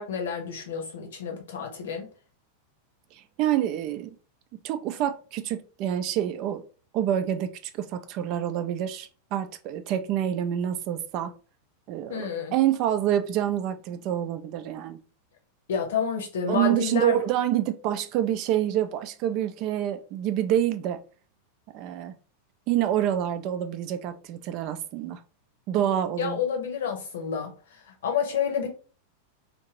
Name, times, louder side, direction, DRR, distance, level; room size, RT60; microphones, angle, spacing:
voice 1, 0.0-2.1 12.1-12.5 15.7-17.2 26.2-28.7, left 7 dB, 60° left, 0.8 m, -29 dB
voice 2, 3.4-4.1 4.6-6.6 6.9-7.5 7.8-11.3 11.9-15.0 16.5-21.0 21.7-22.1 22.7-25.2 25.7-26.4, right 11 dB, 40° right, 0.4 m, -27 dB
2.7 x 2.5 x 3.0 m
figure-of-eight pair, 90°, 0 cm